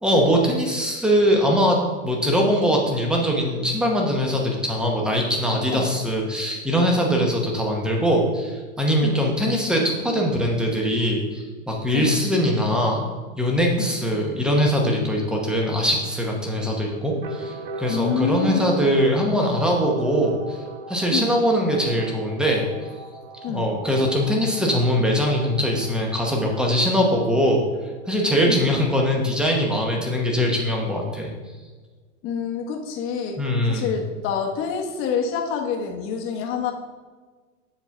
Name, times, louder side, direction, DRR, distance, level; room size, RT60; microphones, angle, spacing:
voice 1, 0.0-13.1 13.4-20.6 20.9-22.7 23.5-27.6 28.1-31.3 33.4-33.9, equal, ahead, 0 dB, 0.9 m, -22 dB
sound 1, 15.0-28.6, right 3 dB, 30° right, 0.7 m, -40 dB
voice 2, 17.9-18.9 21.1-21.4 23.4-23.7 28.5-28.7 32.2-33.4 33.7-36.7, left 6 dB, 30° left, 2 dB, 1.1 m, -27 dB
7.4 x 3.9 x 5.8 m, 1.4 s
supercardioid pair, 145°, 40 cm